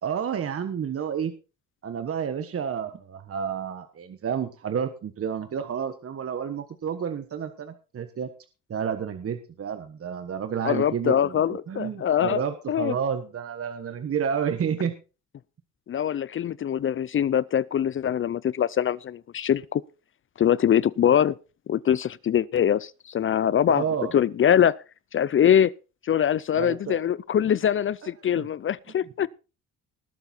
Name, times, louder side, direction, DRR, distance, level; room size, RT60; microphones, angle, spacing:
voice 1, 0.0-1.3 1.8-8.3 8.7-15.0 23.7-24.1 26.5-27.0 28.0-28.4, right 7 dB, 50° right, 1.4 m, -30 dB
voice 2, 10.6-12.4 12.7-12.9 15.9-19.8 20.4-21.4 21.7-23.8 24.1-24.8 25.1-25.7 26.0-29.3, left 9 dB, 45° left, 0.5 m, -23 dB
19.5 x 7.0 x 4.4 m
cardioid pair, 90°, 30 cm